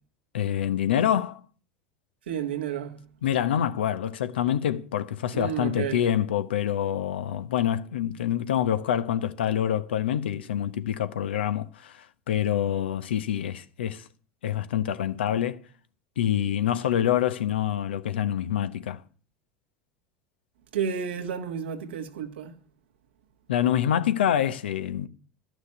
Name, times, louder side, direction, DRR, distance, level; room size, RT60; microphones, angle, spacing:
voice 1, 0.3-1.4 3.2-14.0 14.4-15.6 16.2-19.0 23.5-25.1, left 10 dB, 90° left, 0.9 m, -26 dB
voice 2, 2.3-3.0 5.3-6.0 20.7-22.5, right 8 dB, 90° right, 1.6 m, -31 dB
12.0 x 6.3 x 9.5 m
hypercardioid pair, 95°, 6 cm